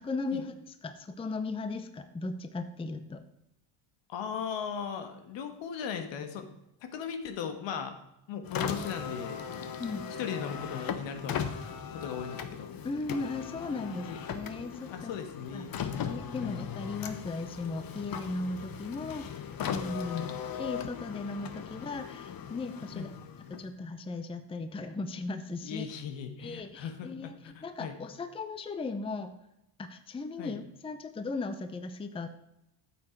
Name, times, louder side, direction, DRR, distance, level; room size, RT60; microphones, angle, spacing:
voice 1, 0.0-3.2 9.8-10.0 12.8-15.1 15.5-20.3 20.6-23.1 23.6-25.9 26.4-27.3 27.6-29.3 29.8-32.3, left 3 dB, 10° left, 9 dB, 0.6 m, -37 dB
voice 2, 4.1-6.5 6.8-8.0 8.3-9.4 10.2-11.4 11.9-12.8 13.9-14.2 14.9-15.7 16.4-16.7 20.1-20.3 22.9-23.1 25.6-28.0 30.4-30.6, left 7 dB, 70° left, 8 dB, 1.6 m, -38 dB
Car, 8.4-23.8, left 8 dB, 50° left, 1.0 m, -38 dB
9.1 x 7.7 x 4.5 m, 0.86 s
cardioid pair, 110°, 46 cm